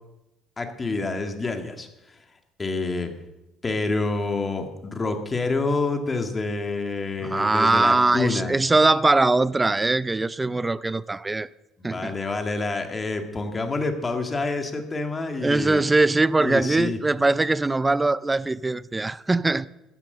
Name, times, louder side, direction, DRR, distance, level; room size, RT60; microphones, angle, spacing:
voice 1, 0.6-2.2 2.6-3.1 3.6-8.6 11.8-15.8 16.4-17.0, left 3 dB, 20° left, 1.9 m, -27 dB
voice 2, 7.2-11.5 11.8-12.2 15.4-19.7, right 2 dB, 15° right, 0.4 m, -21 dB
14.0 x 10.0 x 6.8 m
cardioid pair, 125°, 0 cm